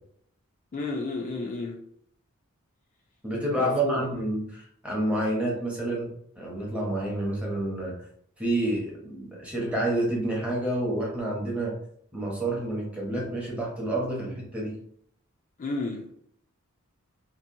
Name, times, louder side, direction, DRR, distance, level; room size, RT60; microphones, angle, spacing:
voice 1, 0.7-1.8 3.5-4.0 15.6-16.1, left 3 dB, 35° left, 1 dB, 0.3 m, -31 dB
voice 2, 3.2-8.0 8.4-11.8 12.1-14.8, right 1 dB, 5° right, -3 dB, 0.7 m, -29 dB
2.6 x 2.1 x 2.5 m, 0.66 s
head